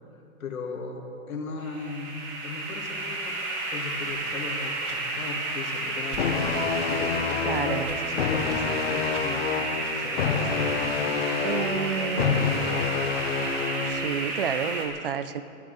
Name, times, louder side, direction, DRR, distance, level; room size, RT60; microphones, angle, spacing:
voice 1, 0.1-2.2 2.4-3.4 3.7-12.8, left 4 dB, 70° left, 1 dB, 2.5 m, -38 dB
sound 1, 1.6-14.9, right 2 dB, 10° right, 0.8 m, -32 dB
sound 2, 4.0-4.2 4.8-5.0 6.1-6.3 6.8-6.9 7.3-7.4 7.8-8.0 8.5-8.6 9.1-9.2 9.8-10.0, right 4 dB, 80° right, 2.5 m, -43 dB
sound 3, 6.2-14.1, left 6 dB, 45° left, 1.1 m, -28 dB
voice 2, 7.4-7.9 11.4-12.5 13.8-15.4, right 7 dB, 40° right, 13 dB, 0.6 m, -30 dB
19.5 x 14.5 x 4.2 m, 2.7 s
hypercardioid pair, 170°, 43 cm